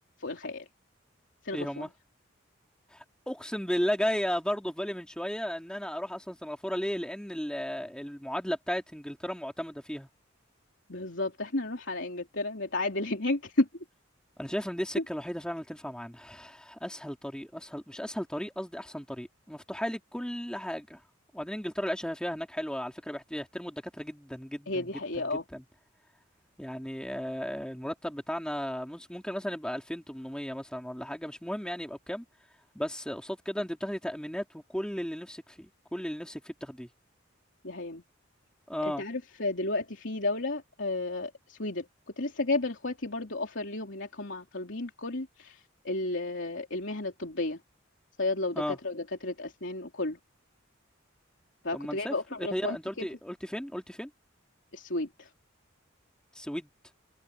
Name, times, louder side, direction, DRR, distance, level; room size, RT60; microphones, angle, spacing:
voice 1, 0.2-0.7 1.4-1.8 10.9-13.7 15.0-15.1 24.7-25.4 37.6-38.0 38.8-41.9 42.1-47.6 48.2-50.2 51.6-53.1 54.7-55.3, left 2 dB, 65° left, 3.6 m, -32 dB
voice 2, 1.5-1.9 2.9-10.1 14.4-21.0 21.3-24.9 25.2-25.6 26.6-32.2 32.7-36.9 38.7-39.0 48.5-48.8 51.7-54.1 56.3-56.7, equal, 5° left, 2.7 m, -35 dB
head